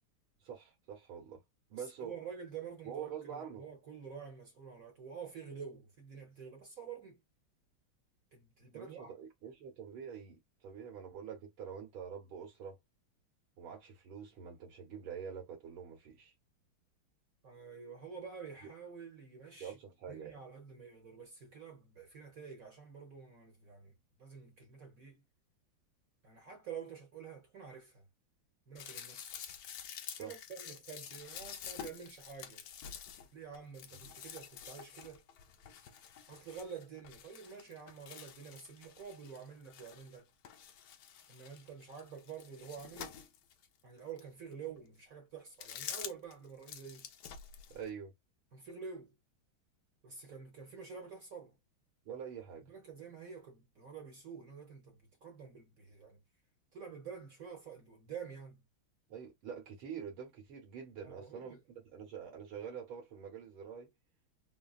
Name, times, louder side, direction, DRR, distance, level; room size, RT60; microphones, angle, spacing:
voice 1, 0.4-1.4 1.7-2.1 2.9-3.6 8.7-12.8 13.6-16.3 19.6-20.4 30.1-30.3 33.9-34.1 47.7-48.1 52.1-52.7 59.1-63.9, right 7 dB, 80° right, 1.9 m, -46 dB
voice 2, 1.7-7.2 8.3-9.1 17.4-19.8 20.1-25.2 26.2-28.1 28.7-29.3 30.2-32.6 33.3-35.2 36.3-40.3 41.3-43.2 43.8-47.1 48.5-49.1 50.0-51.6 52.7-56.2 56.7-58.6 61.0-61.6, right 6 dB, 50° right, 1.2 m, -48 dB
sound 1, 28.8-40.2 40.4-43.7 44.2-44.3 45.5-46.3 46.6-47.9, left 8 dB, 75° left, 0.8 m, -48 dB
3.8 x 2.1 x 2.4 m
omnidirectional pair, 2.2 m